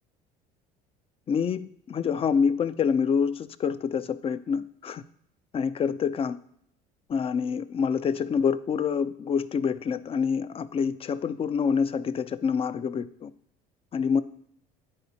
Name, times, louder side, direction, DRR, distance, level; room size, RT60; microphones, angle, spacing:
voice 1, 1.3-5.0 5.5-6.4 7.1-13.3 13.9-14.2, left 6 dB, 30° left, 14 dB, 0.4 m, -26 dB
9.7 x 4.2 x 2.7 m, 0.70 s
supercardioid pair, 75°, 19 cm